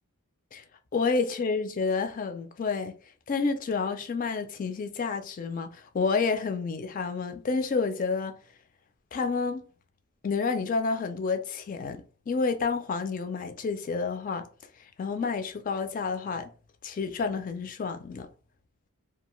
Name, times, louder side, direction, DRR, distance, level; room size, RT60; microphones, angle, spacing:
voice 1, 0.9-3.0 3.3-8.4 9.1-9.7 10.2-14.5 15.0-16.5 16.8-18.3, left 4 dB, 35° left, 0.3 m, -29 dB
2.4 x 2.3 x 3.0 m
head